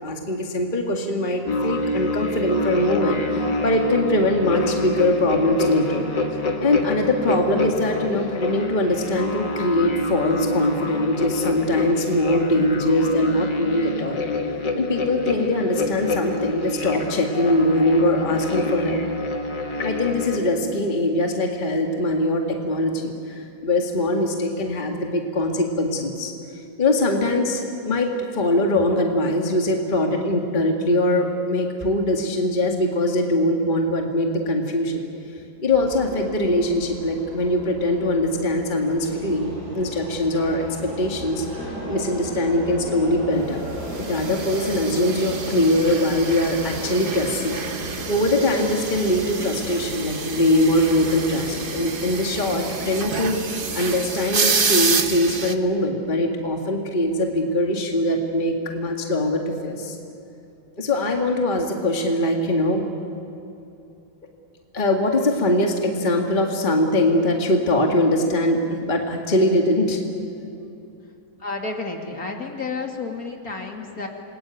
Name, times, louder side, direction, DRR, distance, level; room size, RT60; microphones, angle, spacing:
voice 1, 0.0-6.0 6.6-14.2 14.7-19.0 19.8-26.3 26.8-35.0 35.6-43.6 44.0-47.6 48.1-60.0 60.8-62.9 64.7-70.0, left 1 dB, 25° left, 1 dB, 2.1 m, -22 dB
sound 1, 1.4-20.4, left 2 dB, 65° left, 2.5 m, -27 dB
sound 2, 35.7-55.4, right 1 dB, 50° right, 8.0 m, -36 dB
sound 3, 43.9-55.5, right 4 dB, 35° right, 1.1 m, -29 dB
voice 2, 71.4-74.1, left 3 dB, 50° left, 1 dB, 2.9 m, -31 dB
27.5 x 21.0 x 9.2 m, 2.8 s
omnidirectional pair, 2.1 m